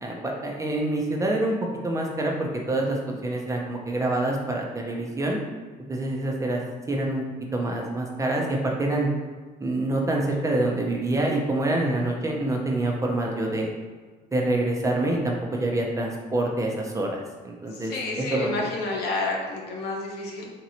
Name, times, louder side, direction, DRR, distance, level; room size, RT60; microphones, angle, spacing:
voice 1, 0.0-1.6 1.8-5.4 5.9-6.6 6.9-7.2 7.5-9.1 9.6-13.7 14.3-18.7, right 2 dB, 20° right, 0 dB, 0.5 m, -26 dB
voice 2, 17.7-20.5, left 3 dB, 75° left, -1 dB, 0.8 m, -30 dB
3.0 x 2.9 x 2.7 m, 1.4 s
cardioid pair, 110°, 17 cm